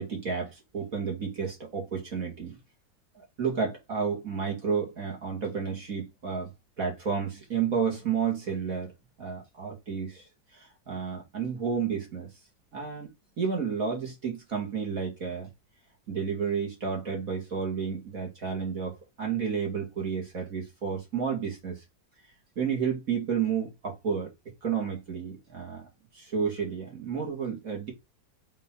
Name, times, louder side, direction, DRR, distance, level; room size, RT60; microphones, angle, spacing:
voice 1, 0.0-2.6 3.4-6.5 6.8-8.9 9.2-10.2 10.5-12.3 12.7-13.1 13.4-15.5 16.1-21.8 22.6-24.3 24.6-25.8 26.1-27.9, right 6 dB, 45° right, 2.5 m, -31 dB
5.4 x 3.8 x 5.5 m
omnidirectional pair, 2.0 m